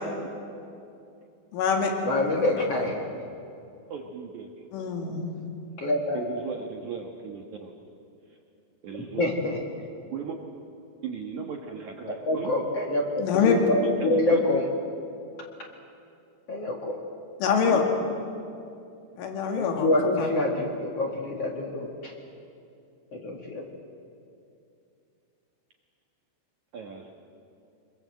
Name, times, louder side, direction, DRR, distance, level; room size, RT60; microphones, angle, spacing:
voice 1, 1.5-1.9 4.7-5.3 13.2-13.5 17.4-17.8 19.2-19.9 20.2-20.3, left 6 dB, 80° left, 3 dB, 4.7 m, -24 dB
voice 2, 2.0-3.0 5.8-6.2 9.2-9.6 12.1-14.7 16.5-17.0 19.6-22.1 23.1-23.6, left 2 dB, 50° left, 0 dB, 2.0 m, -26 dB
voice 3, 3.9-4.5 6.1-7.7 8.3-8.4 8.8-9.3 10.1-10.3 11.0-12.5 13.8-14.4 17.6-18.1 26.7-27.1, right 6 dB, 65° right, 1 dB, 1.9 m, -37 dB
25.5 x 23.0 x 7.8 m, 2.6 s
omnidirectional pair, 5.5 m